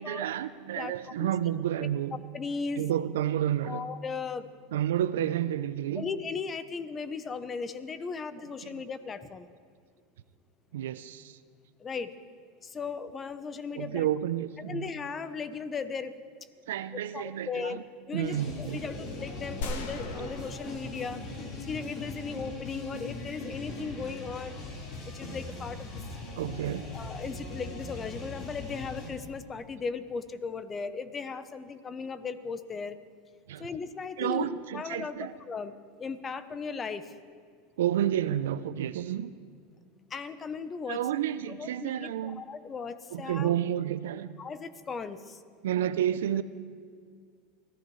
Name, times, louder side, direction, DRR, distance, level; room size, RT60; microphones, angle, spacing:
voice 1, 0.0-2.2 2.8-3.8 4.7-6.1 8.6-8.8 10.7-11.4 13.7-14.9 16.7-17.8 18.1-18.8 20.2-20.3 26.4-26.9 33.5-33.7 34.2-35.3 37.8-39.3 40.9-42.5 43.1-44.3 45.6-46.4, right 11 dB, 85° right, 14 dB, 0.5 m, -30 dB
voice 2, 2.3-2.8 3.6-4.5 5.9-9.5 11.8-12.1 12.6-14.1 14.6-16.1 17.1-17.8 18.1-21.2 21.6-24.6 24.9-26.0 26.9-33.0 33.6-37.1 40.1-41.0 41.6-43.5 44.4-45.4, left 5 dB, 25° left, 13 dB, 0.8 m, -37 dB
sound 1, 18.2-29.1, left 2 dB, 50° left, 4.3 m, -40 dB
sound 2, 19.6-21.9, left 2 dB, 75° left, 1.6 m, -39 dB
24.0 x 15.0 x 3.2 m, 2.1 s
supercardioid pair, 110°, 0 cm